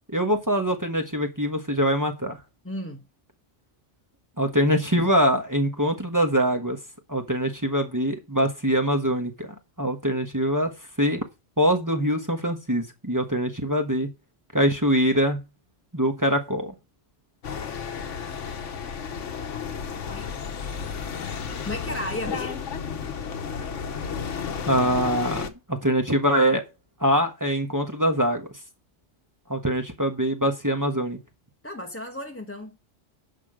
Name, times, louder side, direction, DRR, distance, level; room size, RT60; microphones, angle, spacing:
voice 1, 0.1-2.4 4.4-6.8 7.1-9.5 9.8-10.7 11.0-11.2 11.6-14.1 14.5-15.4 15.9-16.7 24.6-26.6 27.0-28.5 29.5-31.2, equal, 15° right, 1.3 m, -23 dB
voice 2, 2.6-3.0 20.1-20.3 21.6-22.6 31.6-32.7, left 1 dB, 10° left, 1.0 m, -34 dB
sound 1, 17.4-25.5, left 6 dB, 80° left, 1.4 m, -32 dB
11.0 x 6.1 x 5.0 m
omnidirectional pair, 1.2 m